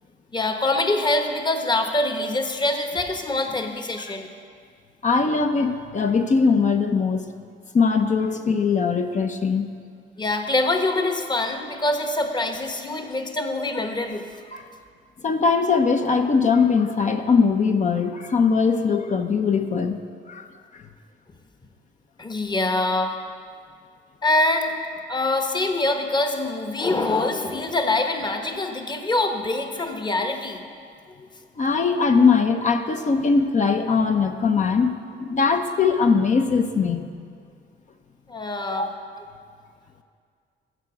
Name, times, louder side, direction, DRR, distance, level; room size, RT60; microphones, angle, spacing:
voice 1, 0.3-4.3 10.2-14.2 22.2-23.2 24.2-24.7 25.1-30.6 38.3-38.9, left 2 dB, 20° left, 5 dB, 1.1 m, -24 dB
voice 2, 5.0-7.2 7.7-9.7 14.5-14.7 15.2-20.0 20.3-20.5 20.7-20.8 31.6-37.1 38.7-38.9, left 5 dB, 40° left, 6 dB, 0.7 m, -21 dB
13.0 x 4.7 x 7.8 m, 2.1 s
cardioid pair, 90°, 20 cm